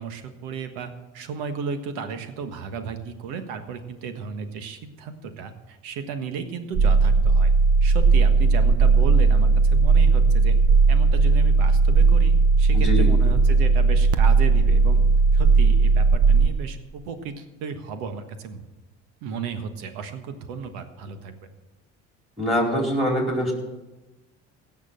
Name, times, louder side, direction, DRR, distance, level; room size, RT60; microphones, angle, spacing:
voice 1, 0.0-7.5 7.8-10.6 10.9-15.0 15.3-18.6 19.2-21.3, right 5 dB, 85° right, 9 dB, 1.5 m, -34 dB
sound 1, 6.7-16.5, right 4 dB, 50° right, 1.0 m, -17 dB
voice 2, 12.7-13.1 22.4-23.5, equal, ahead, 0 dB, 4.6 m, -23 dB
17.0 x 6.5 x 7.7 m, 1.1 s
supercardioid pair, 85°, 31 cm